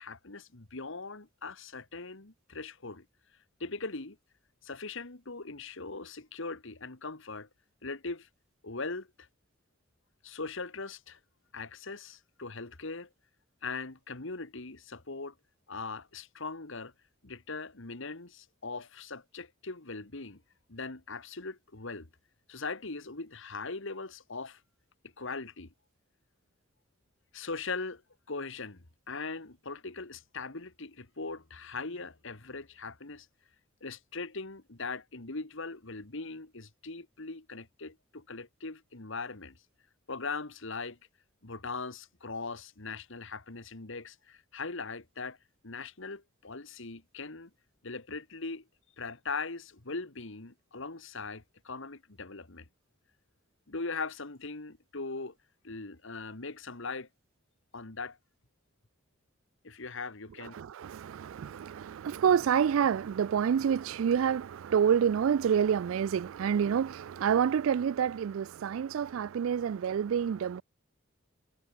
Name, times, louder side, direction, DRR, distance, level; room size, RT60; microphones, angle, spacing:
voice 1, 0.0-3.1 3.6-4.2 4.6-7.5 7.8-8.3 8.6-9.1 10.2-11.2 11.5-13.1 13.6-15.3 15.7-16.9 17.2-20.4 20.7-22.1 22.5-24.6 25.0-25.7 27.3-28.0 28.3-33.3 33.8-39.6 40.1-41.0 41.4-45.4 45.6-47.5 47.8-48.6 49.0-52.7 53.7-55.4 55.6-57.1 57.7-58.2 59.6-60.6, left 3 dB, 65° left, 2.0 m, -40 dB
voice 2, 60.6-70.6, right 8 dB, 70° right, 0.3 m, -28 dB
head